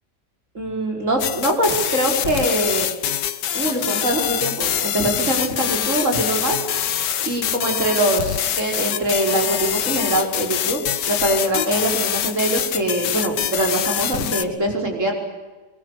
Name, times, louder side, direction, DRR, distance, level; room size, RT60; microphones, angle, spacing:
voice 1, 0.5-2.9 3.5-6.6 7.2-10.8 11.1-15.1, right 1 dB, 45° right, 2 dB, 5.6 m, -23 dB
sound 1, 1.2-14.4, left 10 dB, 85° left, 1.7 m, -24 dB
25.0 x 23.0 x 8.3 m, 1.2 s
omnidirectional pair, 1.8 m